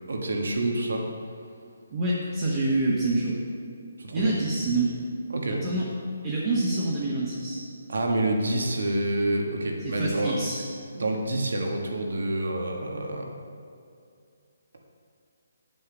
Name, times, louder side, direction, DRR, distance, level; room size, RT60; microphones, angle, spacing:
voice 1, 0.1-1.0 4.0-4.3 5.3-5.6 7.9-10.4 10.9-13.3, right 1 dB, 80° right, 1 dB, 1.6 m, -27 dB
voice 2, 1.9-3.4 4.1-5.0 5.5-5.9 6.2-7.6 9.8-10.6, right 2 dB, 25° right, -5 dB, 1.2 m, -26 dB
8.7 x 7.8 x 5.2 m, 2.4 s
hypercardioid pair, 170°, 0 cm